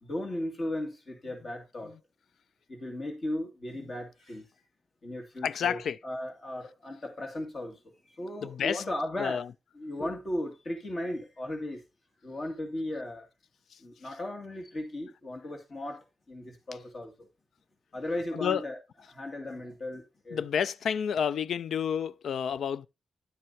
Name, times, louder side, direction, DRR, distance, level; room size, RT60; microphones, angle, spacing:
voice 1, 0.0-2.0 2.7-4.4 5.0-9.4 9.8-11.8 12.2-13.3 13.8-17.3 17.9-18.8 19.1-20.4, left 1 dB, 40° left, 2.4 m, -36 dB
voice 2, 5.4-6.0 8.4-8.8 9.2-9.5 13.7-13.8 18.3-18.6 20.3-22.9, left 8 dB, 90° left, 0.4 m, -30 dB
11.5 x 7.7 x 2.8 m
wide cardioid pair, 125°, 0 cm